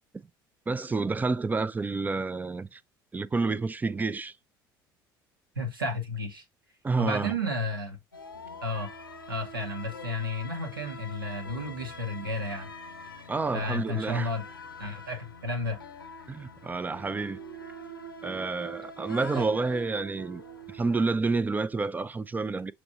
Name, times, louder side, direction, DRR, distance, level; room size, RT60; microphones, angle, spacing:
voice 1, 0.7-2.8 3.1-4.4 6.8-7.3 13.3-14.3 16.3-17.4 18.2-20.4 20.7-22.7, right 3 dB, 15° right, 0.4 m, -29 dB
voice 2, 5.5-6.4 7.0-8.0 8.6-8.9 9.3-12.7 13.5-14.4 14.8-15.8 19.3-19.5, left 1 dB, 85° right, 1.0 m, -32 dB
sound 1, 8.1-21.0, equal, 85° left, 0.7 m, -44 dB
6.9 x 3.1 x 2.5 m
figure-of-eight pair, 60°, 11 cm